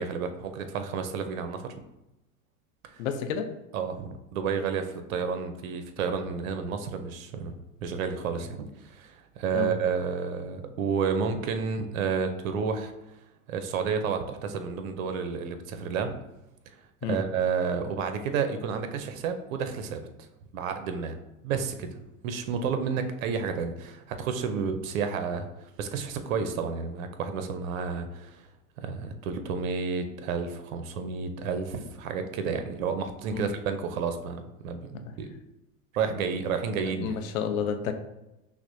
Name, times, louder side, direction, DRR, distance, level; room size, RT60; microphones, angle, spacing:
voice 1, 0.0-1.7 2.9-3.0 3.7-7.5 7.8-12.9 13.5-16.2 17.0-20.3 20.5-21.2 21.4-22.0 22.2-28.5 28.8-35.3 35.9-37.2, right 5 dB, 75° right, 8 dB, 0.6 m, -31 dB
voice 2, 3.0-3.5 9.5-9.7 17.0-17.2 33.3-33.5 36.9-37.9, left 7 dB, 75° left, 7 dB, 0.6 m, -30 dB
5.8 x 2.1 x 2.6 m, 0.94 s
hypercardioid pair, 115°, 41 cm